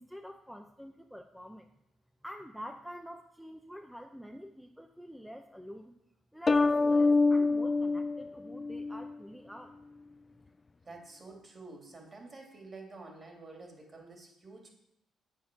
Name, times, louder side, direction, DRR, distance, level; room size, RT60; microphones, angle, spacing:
voice 1, 0.0-1.7 2.2-6.0 6.3-9.8, equal, ahead, 5 dB, 0.7 m, -47 dB
sound 1, 6.5-9.1, left 3 dB, 30° left, 0.3 m, -26 dB
voice 2, 10.8-14.7, right 3 dB, 35° right, 1 dB, 2.9 m, -49 dB
8.7 x 7.3 x 6.2 m, 0.80 s
cardioid pair, 90°, 0 cm